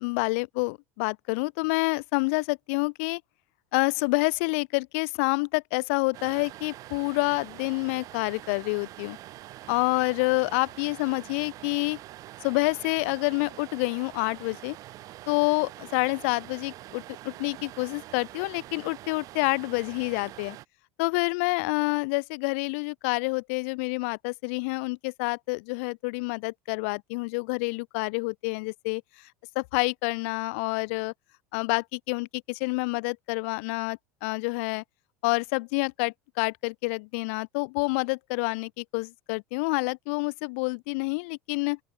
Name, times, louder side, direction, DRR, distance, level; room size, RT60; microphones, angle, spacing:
voice 1, 0.0-3.2 3.7-9.2 9.7-12.0 12.4-14.8 15.3-20.6 21.0-29.0 29.5-31.1 31.5-34.8 35.2-41.8, left 30 dB, 65° left, 0.8 m, -28 dB
sound 1, 6.1-20.7, right 15 dB, 50° right, 1.3 m, -45 dB
open air
hypercardioid pair, 75°, 8 cm